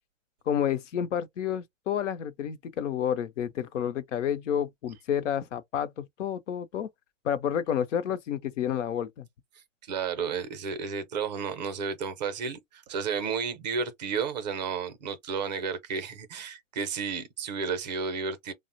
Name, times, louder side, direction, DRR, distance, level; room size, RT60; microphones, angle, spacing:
voice 1, 0.5-6.9 7.2-9.3, left 9 dB, 70° left, 0.6 m, -30 dB
voice 2, 9.8-18.5, right 5 dB, 35° right, 0.5 m, -32 dB
3.1 x 2.0 x 2.6 m
hypercardioid pair, 155°, 39 cm